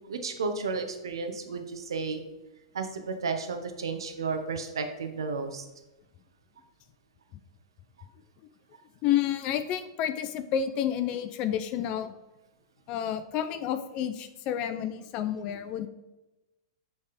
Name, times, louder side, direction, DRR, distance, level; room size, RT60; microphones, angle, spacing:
voice 1, 0.1-2.2 2.7-5.6, right 4 dB, 85° right, 6 dB, 0.8 m, -33 dB
voice 2, 9.0-12.2 12.9-15.9, left 10 dB, 40° left, 10 dB, 0.5 m, -30 dB
7.0 x 3.5 x 5.0 m, 1.0 s
hypercardioid pair, 120°, 2 cm